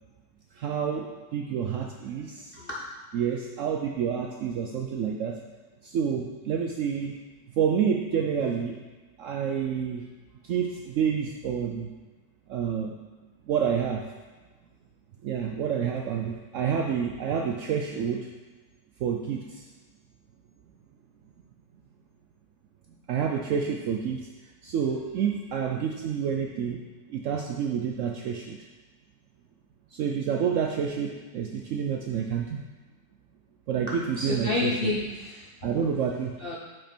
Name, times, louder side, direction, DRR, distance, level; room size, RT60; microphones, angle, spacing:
voice 1, 0.6-2.6 3.1-5.4 5.8-7.2 7.6-8.8 9.2-10.1 10.4-11.9 12.5-12.9 13.5-14.0 15.2-18.3 19.0-19.6 23.1-24.3 24.6-26.8 27.1-28.6 29.9-32.6 33.7-35.0 35.6-36.3, right 7 dB, 80° right, 1 dB, 0.7 m, -28 dB
voice 2, 33.9-35.5 35.8-35.9 36.4-36.6, left 3 dB, 55° left, -4 dB, 0.6 m, -30 dB
6.0 x 5.1 x 4.4 m, 1.3 s
omnidirectional pair, 1.9 m